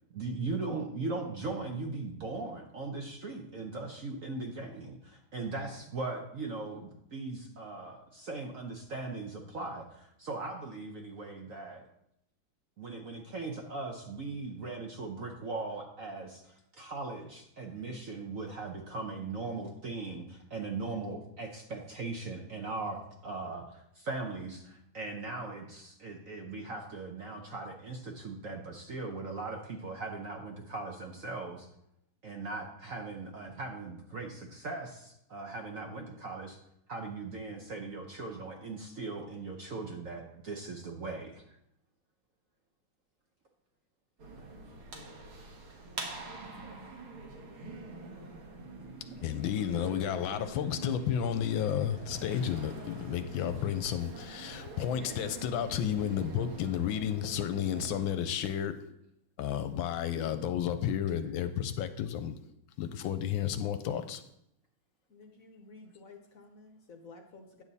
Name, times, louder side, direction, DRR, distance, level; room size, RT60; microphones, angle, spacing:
voice 1, 0.1-11.8 12.8-31.7 32.2-36.6 36.9-41.4, right 3 dB, 55° right, 2 dB, 1.0 m, -39 dB
sound 1, 44.2-58.0, right 3 dB, 80° right, 2.3 m, -45 dB
voice 2, 49.2-58.8 59.4-62.4 62.8-64.2, left 9 dB, 75° left, 10 dB, 1.3 m, -32 dB
voice 3, 65.1-67.6, left 3 dB, 55° left, 4 dB, 1.0 m, -53 dB
9.9 x 7.2 x 4.1 m, 0.78 s
omnidirectional pair, 2.3 m